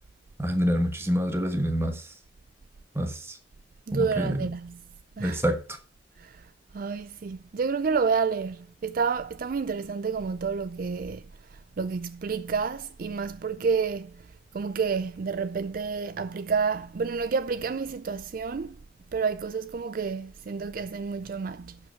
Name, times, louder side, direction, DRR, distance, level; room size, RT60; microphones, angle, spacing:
voice 1, 0.4-2.1 2.9-3.4 3.9-4.5 5.2-5.8, equal, 15° right, 1.3 m, -27 dB
voice 2, 3.9-4.8 5.2-5.4 6.2-6.4 6.7-11.2 11.5-14.3 14.5-18.8 19.1-21.8, right 5 dB, 50° right, 0.4 m, -29 dB
11.5 x 5.3 x 4.9 m
head